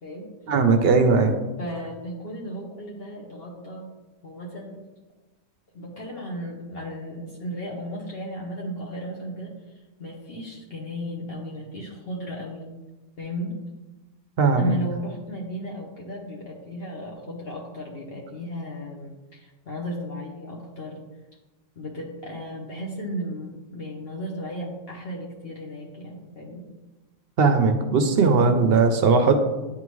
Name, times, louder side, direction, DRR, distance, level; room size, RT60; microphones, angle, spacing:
voice 1, 0.5-1.4 14.4-14.7 27.4-29.3, right 4 dB, 60° right, 7 dB, 0.7 m, -18 dB
voice 2, 1.6-3.9 4.2-4.8 5.7-9.5 10.0-12.7 13.2-13.6 14.6-21.0 21.8-26.7, equal, 50° left, -3 dB, 1.1 m, -35 dB
9.9 x 3.6 x 3.1 m, 1.1 s
omnidirectional pair, 1.3 m